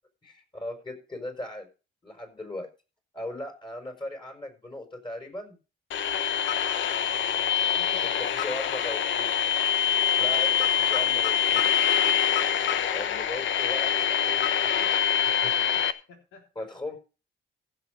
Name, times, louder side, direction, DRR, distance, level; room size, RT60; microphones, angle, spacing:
voice 1, 0.2-1.7 2.0-2.7 3.1-5.6 8.0-9.3 10.2-11.7 12.9-15.6 16.6-17.0, left 1 dB, 25° left, 4 dB, 5.4 m, -38 dB
sound 1, 5.9-15.9, left 9 dB, 70° left, 1.0 m, -25 dB
voice 2, 6.8-8.5 12.6-13.3 15.5-16.5 16.8-16.9, left 5 dB, 90° left, 2 dB, 3.4 m, -51 dB
15.5 x 6.9 x 5.0 m, 0.32 s
cardioid pair, 90°, 20 cm